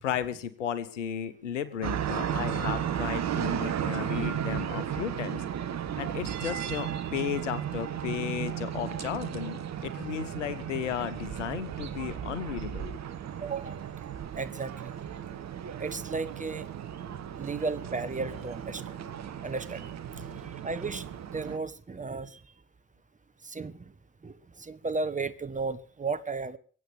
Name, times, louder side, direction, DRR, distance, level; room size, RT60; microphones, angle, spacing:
voice 1, 0.0-5.4 6.0-13.0 17.1-17.5, left 9 dB, 80° left, 1.0 m, -34 dB
sound 1, 1.8-21.6, right 9 dB, 45° right, 1.6 m, -35 dB
voice 2, 13.4-13.8 14.3-14.9 15.8-16.7 17.4-19.0 19.4-22.4 23.4-23.9 24.2-26.6, right 4 dB, 20° right, 1.4 m, -35 dB
23.0 x 8.6 x 6.8 m
figure-of-eight pair, 45°, 36 cm